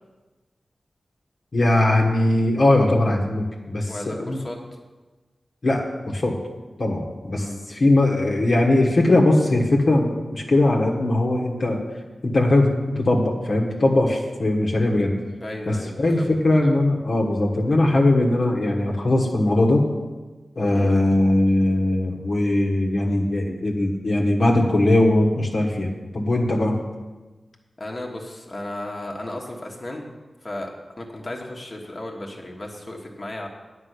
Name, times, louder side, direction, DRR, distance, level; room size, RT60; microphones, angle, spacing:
voice 1, 1.5-4.4 5.6-6.3 6.8-11.8 12.2-15.1 15.7-19.8 20.5-26.7, left 1 dB, 55° left, -1 dB, 1.4 m, -20 dB
voice 2, 3.9-4.6 7.3-7.5 15.4-16.3 20.7-20.9 27.8-30.0 30.4-30.7 31.0-33.5, left 1 dB, 35° left, -1 dB, 1.4 m, -34 dB
9.7 x 5.3 x 8.2 m, 1.2 s
wide cardioid pair, 85°, 0 cm